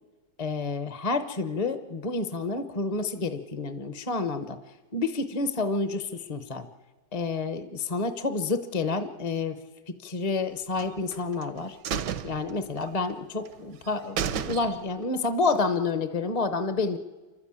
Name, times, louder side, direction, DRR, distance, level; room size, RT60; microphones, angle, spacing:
voice 1, 0.4-4.6 4.9-6.7 7.1-9.6 9.9-11.8 12.2-17.0, left 3 dB, 35° left, 10 dB, 0.6 m, -29 dB
sound 1, 10.8-11.5 11.8-13.1 13.5-13.6 13.9-14.0 14.2-15.1 15.4-15.5, right 8 dB, 75° right, 1.4 m, -32 dB
28.0 x 12.0 x 8.8 m, 1.3 s
omnidirectional pair, 1.9 m